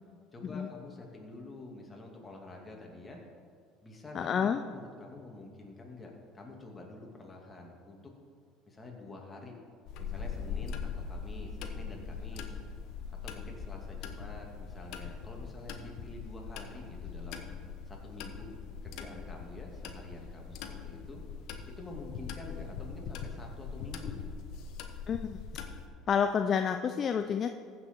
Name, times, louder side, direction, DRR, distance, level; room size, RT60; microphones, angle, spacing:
voice 1, 0.3-3.2 3.8-8.1 8.7-9.5 10.0-12.6 13.2-17.4 17.9-18.5 18.8-21.2 21.8-24.3, left 2 dB, 20° left, 0 dB, 2.6 m, -47 dB
voice 2, 4.1-4.6 25.1-25.4 26.1-27.5, left 7 dB, 45° left, 8 dB, 0.5 m, -29 dB
sound 1, 9.9-25.9, left 6 dB, 65° left, 1.0 m, -41 dB
15.0 x 6.2 x 4.6 m, 2.2 s
hypercardioid pair, 70°, 0 cm